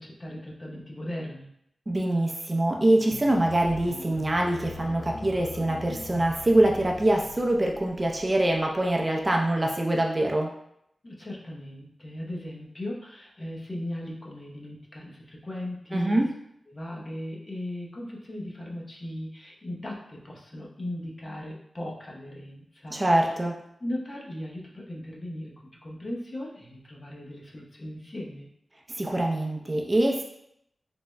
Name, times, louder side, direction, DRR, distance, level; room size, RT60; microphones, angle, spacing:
voice 1, 0.0-1.5 11.0-16.3 16.7-23.0 23.8-28.5, left 1 dB, 40° left, -2 dB, 0.7 m, -37 dB
voice 2, 1.9-10.5 15.9-16.3 22.9-23.6 28.9-30.2, right 1 dB, 30° right, 0 dB, 0.4 m, -24 dB
sound 1, 3.0-9.6, left 3 dB, 60° left, 0.3 m, -43 dB
3.4 x 2.0 x 3.1 m, 0.75 s
wide cardioid pair, 65°, 0 cm